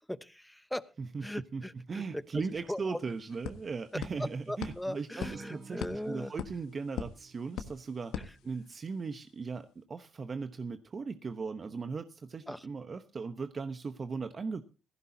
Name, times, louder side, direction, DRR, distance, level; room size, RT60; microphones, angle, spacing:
voice 1, 0.1-0.9 1.2-2.2 2.5-3.0 3.9-6.3 8.1-8.4 12.5-12.7, left 1 dB, 5° left, 13 dB, 0.9 m, -39 dB
voice 2, 1.9-5.8 6.1-8.2 8.4-14.6, right 4 dB, 40° right, 8 dB, 1.0 m, -38 dB
sound 1, 2.3-2.4 2.7-9.1, left 9 dB, 90° left, 1.3 m, -43 dB
Acoustic guitar, 5.2-9.4, right 4 dB, 70° right, 2.7 m, -54 dB
17.5 x 15.5 x 2.8 m, 0.32 s
cardioid pair, 90°, 0 cm